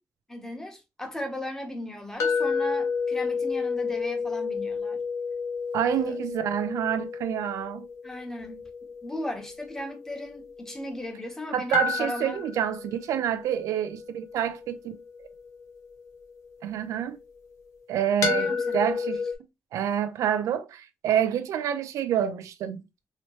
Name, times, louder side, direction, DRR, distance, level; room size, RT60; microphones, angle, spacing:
voice 1, 0.3-5.0 5.9-6.2 8.0-8.7 9.0-12.4 18.3-19.0, left 1 dB, 10° left, 1.0 m, -37 dB
sound 1, 2.2-11.1 11.7-16.8 18.2-19.3, left 5 dB, 80° left, 0.8 m, -31 dB
voice 2, 5.7-7.9 11.5-15.0 16.6-17.2 17.9-19.2 19.7-22.9, right 10 dB, 85° right, 0.4 m, -27 dB
3.0 x 2.9 x 3.0 m
cardioid pair, 100°, 5 cm